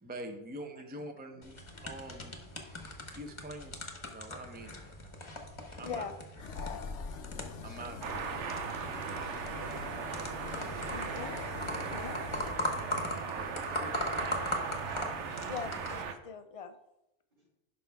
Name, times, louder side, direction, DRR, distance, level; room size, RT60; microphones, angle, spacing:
voice 1, 0.0-2.4 3.1-4.8 5.8-6.0 7.6-8.7 13.3-14.6, right 1 dB, 10° right, 5 dB, 0.6 m, -46 dB
sound 1, 1.4-16.0, left 1 dB, 25° left, 1.0 m, -40 dB
sound 2, 6.4-12.5, left 5 dB, 85° left, 1.1 m, -44 dB
voice 2, 7.0-7.8 9.2-9.4 17.3-17.5, left 1 dB, 50° right, -5 dB, 3.4 m, -65 dB
sound 3, 8.0-16.1, right 6 dB, 80° right, 1.0 m, -38 dB
voice 3, 10.9-11.3 11.9-12.1 15.5-16.7, left 6 dB, 60° left, 9 dB, 0.3 m, -41 dB
11.0 x 5.1 x 3.5 m, 0.90 s
omnidirectional pair, 1.2 m